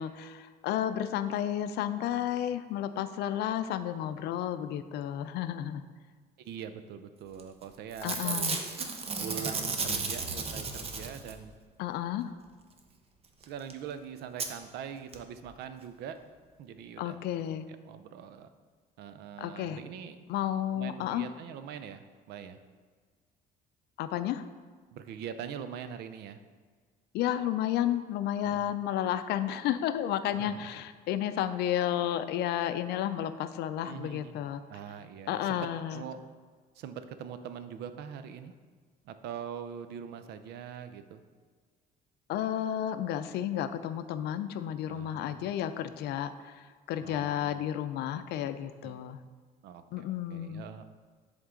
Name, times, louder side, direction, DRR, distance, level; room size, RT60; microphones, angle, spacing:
voice 1, 0.0-5.8 8.0-8.6 11.8-12.3 17.0-17.7 19.4-19.8 20.3-21.3 24.0-24.4 27.1-34.6 35.3-36.0 42.3-49.2 49.9-50.6, left 11 dB, 75° left, 11 dB, 0.4 m, -32 dB
voice 2, 6.4-8.5 9.2-11.5 13.4-16.2 16.6-17.2 17.8-18.5 19.0-20.2 20.7-22.6 24.9-26.4 28.4-28.7 30.4-30.7 33.8-34.4 34.7-35.6 35.9-36.2 36.8-38.5 39.0-41.2 44.9-45.4 47.0-47.6 48.8-49.0 49.6-50.8, right 8 dB, 75° right, 10 dB, 0.5 m, -43 dB
Packing tape duct tape / Tearing, 7.4-7.6 7.9-11.5 13.4-13.5 13.7-13.8 14.4-14.5 15.1-15.2 15.4-15.5, right 4 dB, 35° right, 0.7 m, -34 dB
11.0 x 3.6 x 3.7 m, 1.5 s
cardioid pair, 110°, 17 cm